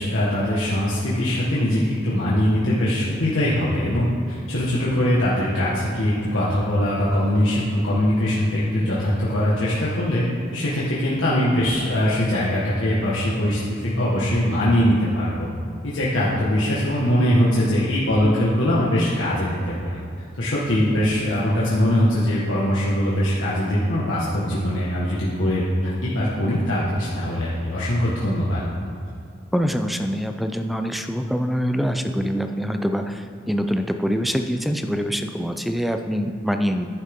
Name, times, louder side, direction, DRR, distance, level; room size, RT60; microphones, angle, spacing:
voice 1, 0.0-10.2 10.5-15.5 15.8-20.0 20.4-28.6, equal, 85° left, -8 dB, 1.6 m, -22 dB
voice 2, 29.5-36.9, equal, ahead, 6 dB, 0.4 m, -24 dB
11.0 x 10.0 x 3.7 m, 2.6 s
head